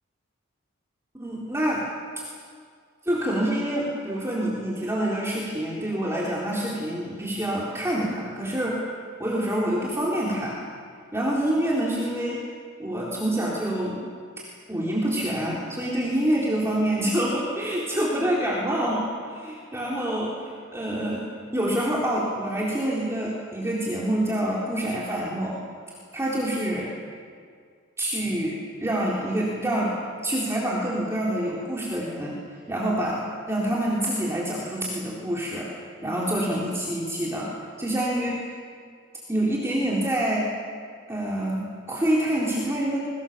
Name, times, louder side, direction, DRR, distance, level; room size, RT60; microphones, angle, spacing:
voice 1, 1.2-1.9 3.0-8.9 9.2-10.6 11.1-12.4 12.8-14.0 14.4-21.3 21.5-25.6 26.1-26.9 28.0-30.0 30.2-32.4 32.7-33.2 33.5-35.7 36.0-37.5 37.8-38.5 39.3-40.5 41.1-43.0, right 1 dB, 15° right, -5 dB, 3.8 m, -26 dB
29.5 x 23.0 x 7.4 m, 2.1 s
head